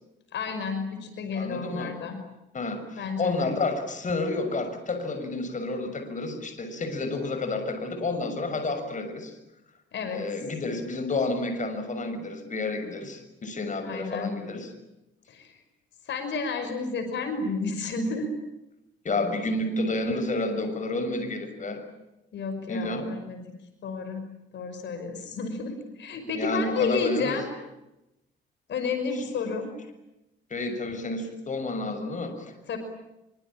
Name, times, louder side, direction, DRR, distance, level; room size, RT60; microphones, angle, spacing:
voice 1, 0.3-2.2 3.0-3.5 9.9-10.2 13.8-14.3 15.3-15.6 16.1-18.3 22.3-23.4 23.8-24.2 24.5-27.5 28.7-29.7 32.7-32.8, left 4 dB, 65° left, 7 dB, 5.8 m, -31 dB
voice 2, 1.3-2.0 2.5-9.3 10.1-14.7 19.0-21.8 22.7-23.1 26.3-27.4 29.1-29.2 30.5-32.5, left 2 dB, 40° left, 7 dB, 6.4 m, -30 dB
26.0 x 24.5 x 8.9 m, 0.93 s
cardioid pair, 90°, 20 cm